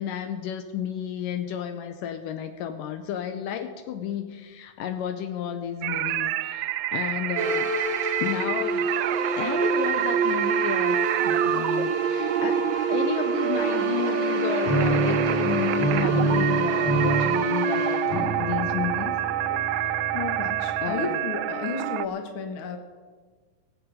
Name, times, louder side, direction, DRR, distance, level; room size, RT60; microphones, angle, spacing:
voice 1, 0.0-7.7 8.0-8.9 9.3-19.2 19.7-20.0 20.8-21.2, left 9 dB, 80° left, 8 dB, 2.2 m, -32 dB
sound 1, 5.8-22.1, right 14 dB, 80° right, 2.1 m, -28 dB
sound 2, 7.4-19.2, right 3 dB, 50° right, 1.4 m, -27 dB
sound 3, 14.6-21.1, right 2 dB, 35° left, 1.9 m, -29 dB
voice 2, 20.1-22.8, left 5 dB, 55° left, 4 dB, 1.5 m, -33 dB
21.5 x 7.6 x 5.1 m, 1.5 s
omnidirectional pair, 4.1 m